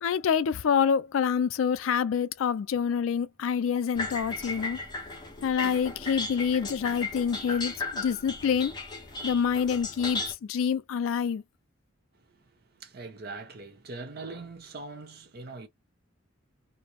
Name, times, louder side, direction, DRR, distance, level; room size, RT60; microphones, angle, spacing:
voice 1, 0.0-4.8 5.4-8.7 9.2-11.4, left 7 dB, 85° left, 0.4 m, -27 dB
sound 1, 3.9-10.3, left 3 dB, 20° left, 0.6 m, -36 dB
voice 2, 12.1-15.7, right 3 dB, 55° right, 0.7 m, -42 dB
2.6 x 2.0 x 2.8 m
head